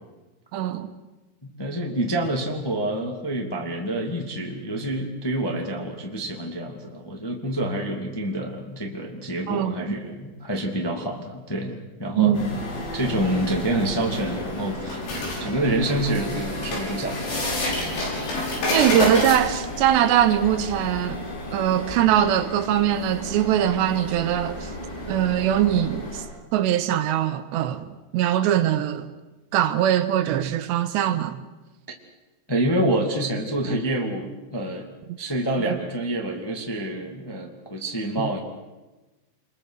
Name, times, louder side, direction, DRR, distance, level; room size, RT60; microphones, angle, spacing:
voice 1, 0.5-0.9 9.5-9.8 12.2-12.6 18.7-21.2 21.5-24.7 25.1-26.2 26.5-29.1 29.5-31.4 35.1-35.2 35.7-35.8 38.2-38.3, right 11 dB, 80° right, 3.1 m, -22 dB
voice 2, 1.4-12.6 12.9-15.1 15.4-17.7 32.5-34.9 35.2-38.4, right 1 dB, 10° left, 1.0 m, -27 dB
sound 1, 12.3-26.2, left 1 dB, 75° left, 8.9 m, -30 dB
28.5 x 22.0 x 6.5 m
omnidirectional pair, 5.2 m